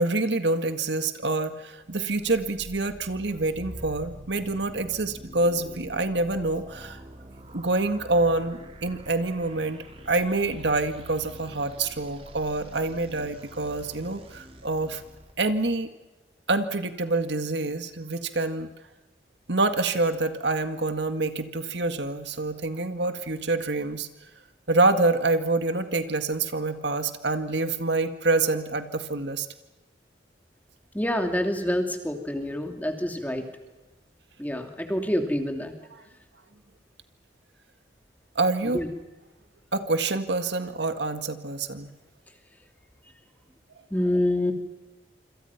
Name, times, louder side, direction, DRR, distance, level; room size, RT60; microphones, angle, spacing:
voice 1, 0.0-7.0 7.5-15.0 15.4-15.9 16.5-18.7 19.5-24.1 24.7-29.5 35.9-36.0 38.4-38.8 39.7-41.9, right 2 dB, 75° right, 8 dB, 1.9 m, -26 dB
sound 1, 2.1-15.3, right 1 dB, 30° right, 2.9 m, -45 dB
voice 2, 30.9-33.4 34.4-35.7 38.7-38.9 43.9-44.5, left 1 dB, 10° left, 4 dB, 2.8 m, -27 dB
27.0 x 27.0 x 5.9 m, 1.1 s
head